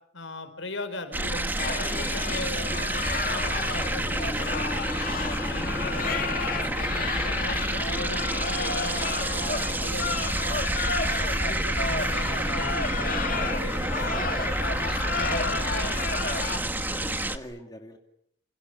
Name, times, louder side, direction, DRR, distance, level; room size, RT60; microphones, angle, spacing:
voice 1, 0.1-4.8 5.3-10.7 11.1-16.1, left 2 dB, 75° left, 9 dB, 4.8 m, -39 dB
sound 1, 1.1-17.4, right 1 dB, 10° right, 1.4 m, -29 dB
sound 2, 1.6-16.6, left 4 dB, 45° left, 2.2 m, -32 dB
voice 2, 3.2-3.5 5.0-5.3 16.5-18.0, left 1 dB, 20° left, 3 dB, 2.6 m, -45 dB
sound 3, 3.9-14.8, right 1 dB, 70° right, 5.8 m, -46 dB
28.5 x 28.0 x 7.0 m, 0.70 s
head